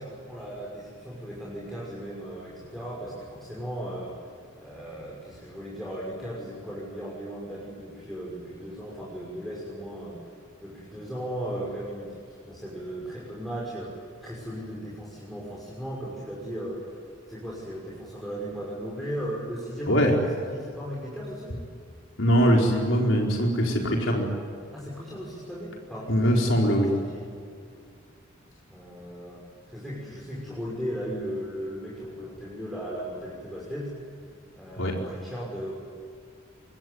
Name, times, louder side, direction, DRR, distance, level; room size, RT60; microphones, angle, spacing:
voice 1, 0.0-4.2 4.6-10.2 10.6-17.0 17.3-21.6 24.7-27.3 28.7-33.9 34.5-35.7, equal, ahead, -6 dB, 6.1 m, -37 dB
voice 2, 22.2-24.3 26.1-26.9 34.8-34.9, equal, 70° left, 0 dB, 4.6 m, -22 dB
25.5 x 23.5 x 9.5 m, 2.3 s
head